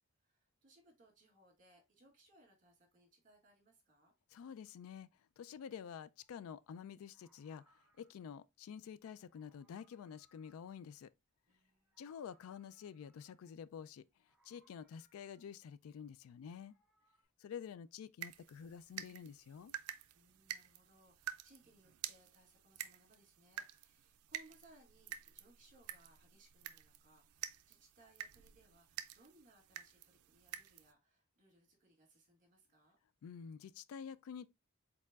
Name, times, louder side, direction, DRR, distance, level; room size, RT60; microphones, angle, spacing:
voice 1, 0.2-4.1 11.5-12.0 20.1-33.0, right 1 dB, 40° right, 1.8 m, -67 dB
voice 2, 4.3-5.1 5.4-11.1 12.0-14.0 14.4-16.7 17.4-19.7 33.2-34.5, left 7 dB, 70° left, 0.3 m, -49 dB
Meow, 6.2-6.4 7.0-8.5 9.2-11.4 11.7-13.6 14.2-15.7 16.3-17.2, right 1 dB, 5° right, 1.0 m, -76 dB
sound 1, 18.2-30.9, right 11 dB, 90° right, 0.4 m, -50 dB
4.4 x 4.1 x 2.3 m
head